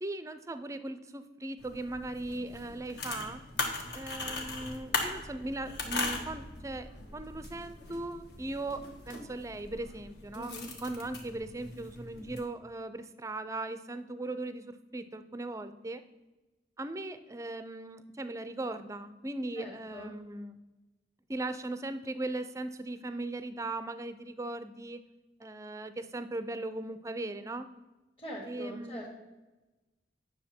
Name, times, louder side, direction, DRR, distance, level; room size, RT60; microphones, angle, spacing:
voice 1, 0.0-3.4 3.9-10.5 10.8-16.0 16.8-20.6 21.3-25.0 25.4-27.7 28.5-29.1, right 2 dB, 15° right, 11 dB, 0.4 m, -38 dB
sound 1, 1.6-12.4, left 3 dB, 60° left, 1.6 m, -39 dB
voice 2, 10.3-10.7 19.6-20.1 28.2-29.1, equal, 30° left, -5 dB, 1.6 m, -43 dB
9.4 x 6.5 x 4.3 m, 1.1 s
head